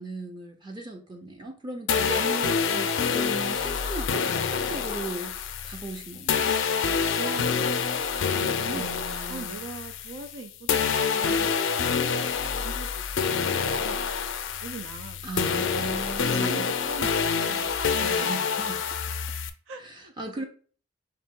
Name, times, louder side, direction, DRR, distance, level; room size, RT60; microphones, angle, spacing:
voice 1, 0.0-2.2 2.6-5.4 5.6-6.5 8.7-9.6 15.2-16.7 18.0-19.0 19.8-20.5, right 2 dB, 25° right, 0.5 m, -37 dB
sound 1, 1.9-10.4 10.7-19.5, left 6 dB, 80° left, 0.4 m, -27 dB
voice 2, 2.1-3.1 7.1-7.9 8.2-8.9 9.3-15.9 16.3-17.1 17.4-17.7 19.7-20.5, right 4 dB, 85° right, 0.5 m, -41 dB
3.6 x 3.0 x 3.6 m
head